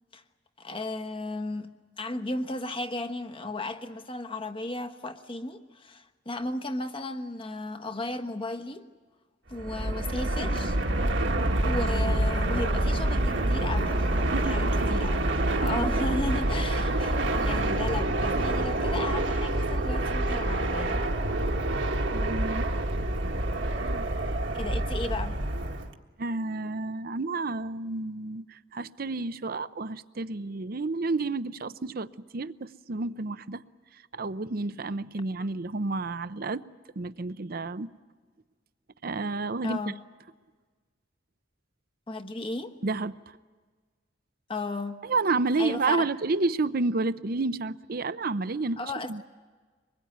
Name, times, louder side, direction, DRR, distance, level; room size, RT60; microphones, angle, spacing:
voice 1, 0.6-1.7 2.0-8.8 9.5-10.8 11.6-15.2 15.5-21.1 24.5-25.4 39.6-40.0 42.1-42.7 44.5-45.0 45.6-46.1 48.8-49.1, left 2 dB, 25° left, 1.2 m, -35 dB
Fixed-wing aircraft airplane, 9.5-25.9, right 1 dB, 65° right, 1.7 m, -27 dB
voice 2, 14.3-14.9 15.6-15.9 22.1-22.7 23.8-24.1 26.2-33.6 34.1-36.7 37.0-37.9 39.0-39.9 42.8-43.4 45.0-48.8 49.1-49.2, right 3 dB, 50° right, 0.7 m, -30 dB
24.5 x 21.0 x 9.4 m
head